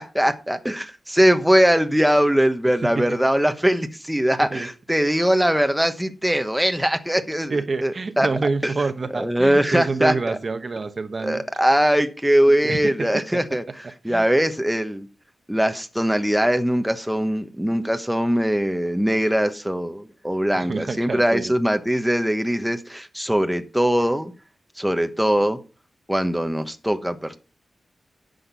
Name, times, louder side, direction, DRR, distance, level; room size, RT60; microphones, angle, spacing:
voice 1, 0.0-8.3 8.6-8.7 9.1-10.4 11.2-13.6 14.0-15.1 15.5-24.3 24.8-25.6 26.1-27.4, equal, 5° right, 1.0 m, -21 dB
voice 2, 7.5-11.4 12.6-13.1 14.1-14.2 20.6-21.5, right 3 dB, 45° right, 1.0 m, -27 dB
10.0 x 6.6 x 5.4 m
wide cardioid pair, 95°, 0 cm